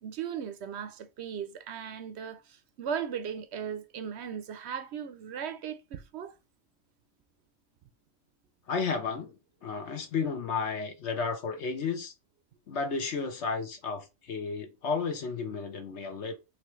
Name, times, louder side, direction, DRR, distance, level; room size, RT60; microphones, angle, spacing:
voice 1, 0.0-6.3, right 8 dB, 65° right, 0.8 m, -37 dB
voice 2, 8.7-9.4 9.6-12.1 12.7-16.3, left 5 dB, 60° left, 1.1 m, -32 dB
4.3 x 3.4 x 3.0 m
omnidirectional pair, 1.4 m